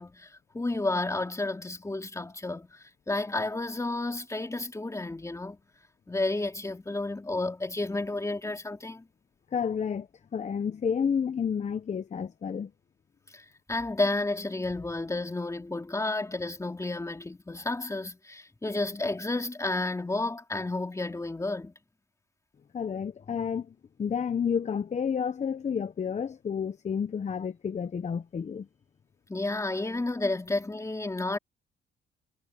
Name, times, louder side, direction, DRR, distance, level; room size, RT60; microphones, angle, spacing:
voice 1, 0.0-2.8 3.1-5.6 6.1-9.0 13.3-21.7 29.3-31.4, left 2 dB, 15° left, 3.3 m, -31 dB
voice 2, 9.5-10.1 10.3-12.7 22.7-23.7 24.0-28.7, left 7 dB, 35° left, 0.8 m, -30 dB
cardioid pair, 90°, 20 cm